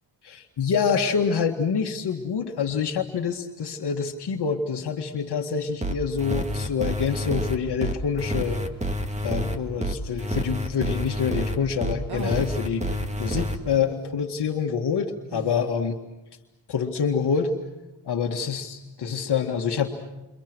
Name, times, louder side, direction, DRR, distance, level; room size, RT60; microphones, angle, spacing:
voice 1, 0.2-8.6 9.2-16.0 16.7-17.5 18.1-19.9, left 6 dB, 55° left, 3 dB, 2.0 m, -26 dB
sound 1, 5.8-13.6, equal, 15° right, 2.1 m, -28 dB
sound 2, 12.1-12.5 13.3-13.6 15.3-15.7, right 5 dB, 55° right, 2.5 m, -37 dB
29.5 x 28.0 x 6.3 m, 1.0 s
cardioid pair, 105°, 47 cm